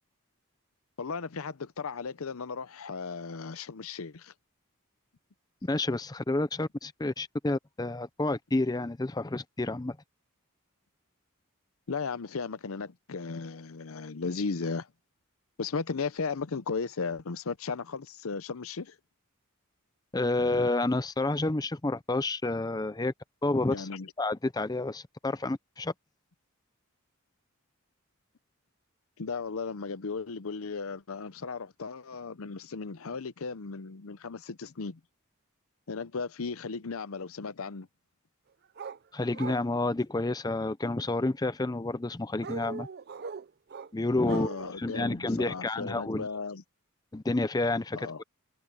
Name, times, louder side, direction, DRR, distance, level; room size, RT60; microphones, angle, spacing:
voice 1, 1.0-4.3 11.9-14.9 15.6-19.0 23.7-24.1 29.2-35.0 35.9-37.9 44.3-46.6 47.9-48.2, left 4 dB, 75° left, 0.7 m, -36 dB
voice 2, 5.6-10.0 20.1-23.1 23.4-23.9 24.2-25.9 39.1-42.9 43.9-44.5 44.8-46.2 47.1-48.2, left 2 dB, 20° left, 0.6 m, -29 dB
sound 1, 38.8-39.0 39.3-39.7 42.4-43.9 44.2-45.1 45.5-45.7, right 4 dB, 45° right, 0.5 m, -40 dB
head